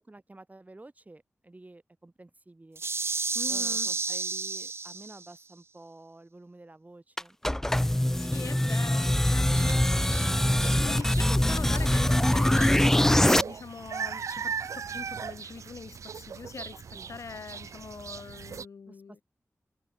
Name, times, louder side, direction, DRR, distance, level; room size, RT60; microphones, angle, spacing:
voice 1, 0.1-2.8 3.5-7.4 16.9-17.1 18.9-19.2, right 2 dB, 30° right, 3.8 m, -51 dB
sound 1, 2.7-5.3, right 4 dB, 55° right, 1.1 m, -31 dB
voice 2, 3.3-3.9 8.1-16.8 17.1-19.2, left 5 dB, 80° left, 1.5 m, -42 dB
sound 2, 7.2-13.4, left 1 dB, 10° left, 0.3 m, -23 dB
sound 3, 9.4-18.7, right 6 dB, 85° right, 0.4 m, -39 dB
cardioid pair, 55°, 5 cm